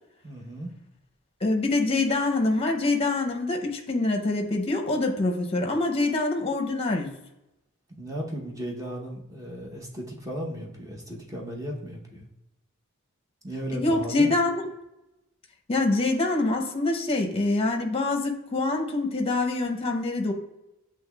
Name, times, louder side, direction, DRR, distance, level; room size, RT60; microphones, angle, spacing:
voice 1, 0.2-0.7 8.0-12.3 13.4-14.3, right 1 dB, 15° right, -1 dB, 0.8 m, -35 dB
voice 2, 1.4-7.1 13.7-14.6 15.7-20.3, left 2 dB, 30° left, 3 dB, 0.7 m, -25 dB
7.7 x 3.0 x 2.3 m, 0.90 s
head